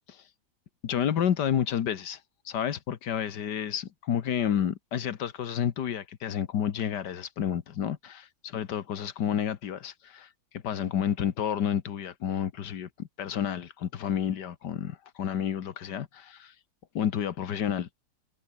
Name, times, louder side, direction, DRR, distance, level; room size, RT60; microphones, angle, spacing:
voice 1, 0.8-2.2 2.5-10.3 10.6-16.5 17.0-17.9, left 9 dB, 85° left, 1.9 m, -30 dB
omnidirectional pair, 1.8 m